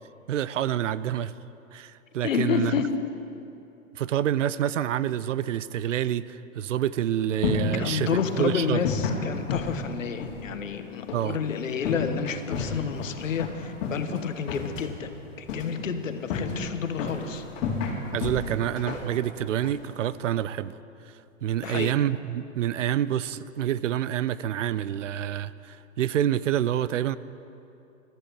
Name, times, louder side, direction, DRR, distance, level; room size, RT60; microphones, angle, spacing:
voice 1, 0.3-1.3 1.7-2.8 4.0-8.8 11.1-11.4 18.1-20.8 21.4-27.2, right 11 dB, 65° right, 17 dB, 0.6 m, -27 dB
voice 2, 2.2-3.1 7.8-17.4 21.6-22.0, left 7 dB, 70° left, 9 dB, 1.3 m, -29 dB
sound 1, 7.0-20.5, left 4 dB, 45° left, 3.0 m, -33 dB
21.5 x 13.5 x 4.5 m, 2.8 s
figure-of-eight pair, 110°, 40 cm